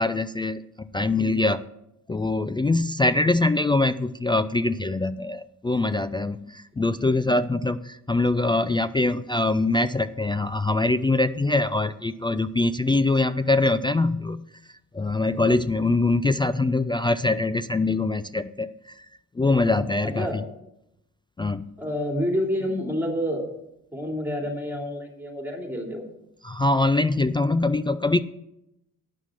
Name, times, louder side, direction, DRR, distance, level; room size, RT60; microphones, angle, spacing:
voice 1, 0.0-1.6 2.1-14.5 14.9-19.1 19.4-20.3 21.4-21.7 26.4-28.2, left 2 dB, 15° left, 14 dB, 0.3 m, -23 dB
voice 2, 1.2-1.5 6.8-6.9 20.2-20.4 21.8-23.5 23.9-26.1, equal, 5° right, 2 dB, 2.9 m, -28 dB
9.6 x 6.2 x 7.4 m, 0.82 s
cardioid pair, 85°, 36 cm